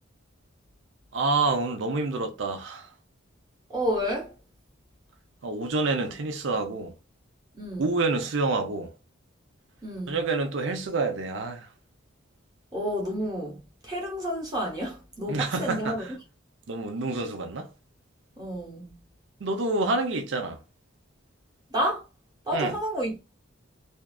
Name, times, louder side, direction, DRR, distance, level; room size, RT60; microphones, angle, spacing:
voice 1, 1.1-2.9 5.4-6.9 7.8-8.9 10.1-11.7 15.3-16.1 16.7-17.7 19.4-20.6 22.5-22.7, right 3 dB, 60° right, 0.5 m, -28 dB
voice 2, 3.7-4.3 7.5-7.9 9.8-10.2 12.7-16.2 18.4-19.0 21.7-22.0 22.5-23.2, equal, 20° right, 0.8 m, -30 dB
2.5 x 2.3 x 2.2 m
head